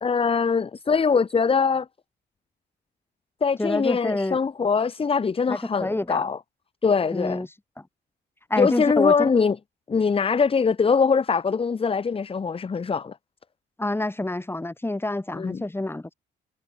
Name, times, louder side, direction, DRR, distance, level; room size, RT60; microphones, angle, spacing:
voice 1, 0.0-1.9 3.4-6.4 6.8-7.4 8.6-9.6 9.9-13.1 15.4-15.6, left 5 dB, 30° left, 0.9 m, -22 dB
voice 2, 3.6-4.4 5.5-6.3 7.1-7.5 7.8-7.9 8.5-9.3 13.8-16.1, left 2 dB, 10° left, 5.1 m, -27 dB
cardioid pair, 90°, 20 cm